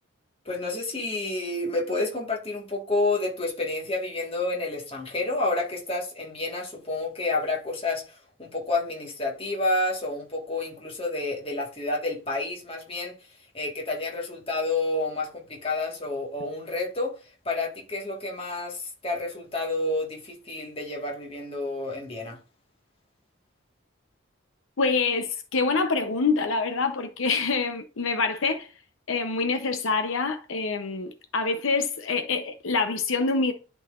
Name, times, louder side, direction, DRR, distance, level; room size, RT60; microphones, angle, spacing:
voice 1, 0.4-13.1 13.5-17.1 17.4-22.4, left 2 dB, 25° left, 1.6 m, -29 dB
voice 2, 24.8-28.7 29.1-33.5, left 4 dB, 75° left, 0.7 m, -26 dB
11.0 x 4.0 x 2.4 m
head